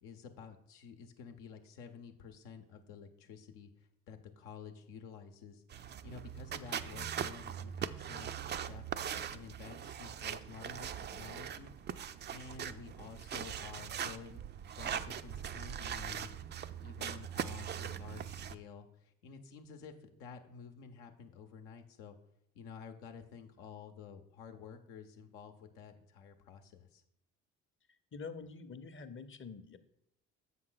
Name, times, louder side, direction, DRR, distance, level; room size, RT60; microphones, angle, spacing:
voice 1, 0.0-3.7 4.1-8.8 9.3-11.7 12.3-14.4 14.8-16.4 16.8-22.2 22.5-27.0, left 6 dB, 80° left, 5 dB, 0.8 m, -51 dB
sound 1, 5.7-18.6, right 9 dB, 30° right, 0.4 m, -41 dB
voice 2, 28.1-29.8, left 5 dB, 35° left, 10 dB, 0.7 m, -46 dB
7.4 x 5.6 x 3.9 m, 0.78 s
hypercardioid pair, 55°, 35 cm